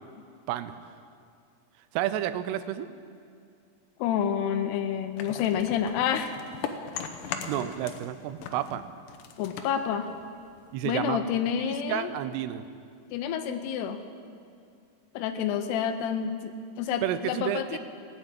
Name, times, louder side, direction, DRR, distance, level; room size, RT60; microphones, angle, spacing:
voice 1, 0.5-0.9 1.9-2.9 7.5-8.9 10.7-11.2 11.6-12.7 17.0-17.8, right 12 dB, 90° right, 12 dB, 2.8 m, -31 dB
voice 2, 4.0-6.4 9.4-10.1 10.8-12.1 13.1-14.0 15.1-17.8, left 8 dB, 90° left, 7 dB, 2.8 m, -29 dB
sound 1, 5.2-8.1 8.4-10.8, left 7 dB, 75° left, 2.4 m, -39 dB
16.0 x 9.5 x 8.8 m, 2.4 s
omnidirectional pair, 4.7 m